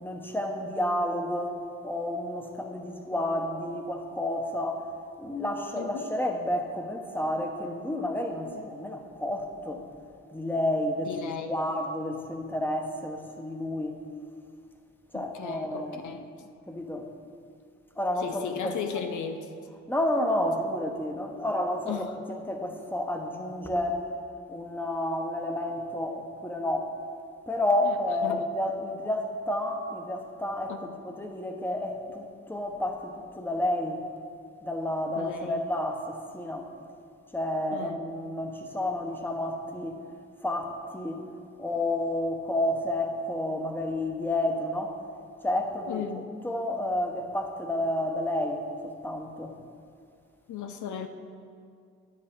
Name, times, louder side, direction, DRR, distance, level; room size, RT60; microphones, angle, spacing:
voice 1, 0.0-4.9 5.2-9.8 10.3-14.0 15.1-16.2 16.7-17.1 18.0-18.7 19.9-24.1 24.5-26.9 27.5-34.0 34.6-36.7 37.3-40.0 40.4-41.2 41.6-45.0 45.4-46.0 46.4-49.5, left 1 dB, 5° left, 3 dB, 1.1 m, -30 dB
voice 2, 5.8-6.1 11.0-11.5 15.1-16.3 18.2-19.5 21.9-22.2 27.8-28.0 28.2-28.4 30.7-31.0 35.2-35.6 37.7-38.1 45.9-46.3 50.5-51.1, left 7 dB, 85° left, 6 dB, 0.6 m, -36 dB
9.6 x 9.5 x 3.7 m, 2.3 s
cardioid pair, 70°, 29 cm